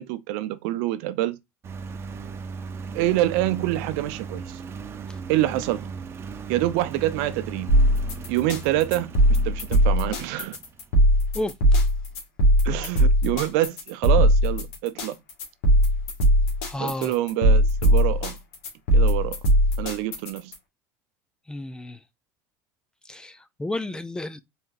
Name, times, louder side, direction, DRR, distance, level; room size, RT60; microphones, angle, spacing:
voice 1, 0.0-1.4 2.9-4.6 5.3-5.9 6.5-7.7 8.3-9.1 9.4-10.6 12.6-15.2 16.8-18.4 18.9-19.4 19.8-20.5, right 15 dB, 70° right, 0.6 m, -26 dB
Engine, 1.6-11.1, right 5 dB, 30° right, 0.6 m, -38 dB
sound 1, 7.7-20.5, equal, 75° left, 1.8 m, -19 dB
voice 2, 11.3-11.8 16.7-17.1 21.5-22.0 23.1-24.4, left 1 dB, 10° left, 0.5 m, -32 dB
4.2 x 3.6 x 2.5 m
supercardioid pair, 100°, 8 cm